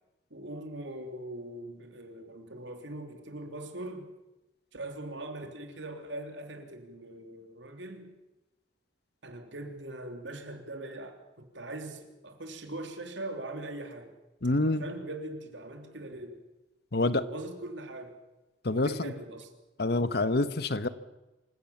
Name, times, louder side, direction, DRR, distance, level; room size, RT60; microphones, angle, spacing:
voice 1, 0.3-4.1 4.7-8.1 9.2-14.1 14.6-16.4 17.1-18.2 18.6-19.5, right 1 dB, 75° right, 5 dB, 3.3 m, -41 dB
voice 2, 14.4-14.9 16.9-17.2 18.6-19.1 19.8-20.9, left 2 dB, 55° left, 14 dB, 1.1 m, -27 dB
26.5 x 16.0 x 7.2 m, 1.0 s
head